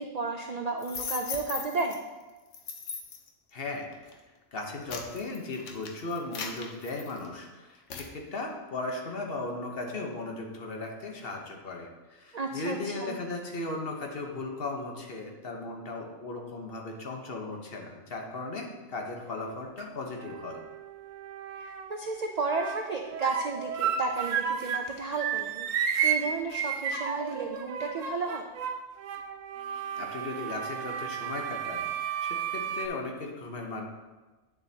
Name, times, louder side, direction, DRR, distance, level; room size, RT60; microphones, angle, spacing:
voice 1, 0.0-2.0 12.3-13.2 21.6-28.4, right 3 dB, 70° right, 3 dB, 0.4 m, -33 dB
sound 1, 0.8-2.0 2.5-3.3 3.9-4.1 4.6-7.4 7.9-8.1, left 6 dB, 75° left, 1.1 m, -38 dB
voice 2, 3.5-4.1 4.5-20.6 29.7-31.9 32.2-33.8, left 2 dB, 50° left, 1 dB, 1.1 m, -37 dB
sound 2, 19.3-19.8 20.2-22.0 22.4-24.9 25.2-32.9, right 8 dB, 90° right, 1.0 m, -33 dB
8.7 x 6.9 x 2.8 m, 1.2 s
omnidirectional pair, 1.3 m